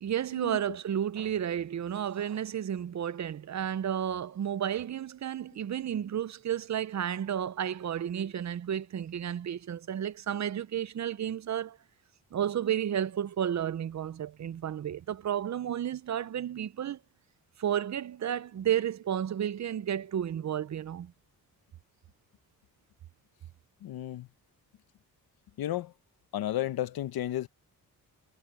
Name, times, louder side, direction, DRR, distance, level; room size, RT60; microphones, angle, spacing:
voice 1, 0.0-11.8 12.3-17.0 17.6-21.1, right 9 dB, 50° right, 0.7 m, -32 dB
voice 2, 23.8-24.3 25.6-25.9 26.3-27.5, left 13 dB, 90° left, 0.9 m, -33 dB
cardioid pair, 95°, 36 cm